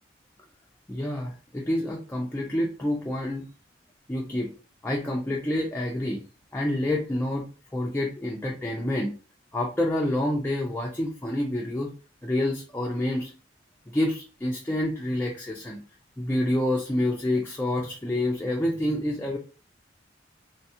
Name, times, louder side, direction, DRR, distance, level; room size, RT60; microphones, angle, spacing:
voice 1, 0.9-3.5 4.1-4.5 4.8-6.2 6.5-7.5 7.7-9.1 9.5-11.9 12.2-13.3 13.9-15.8 16.2-19.4, left 1 dB, 10° left, -1 dB, 0.4 m, -28 dB
3.3 x 2.3 x 2.8 m, 0.36 s
head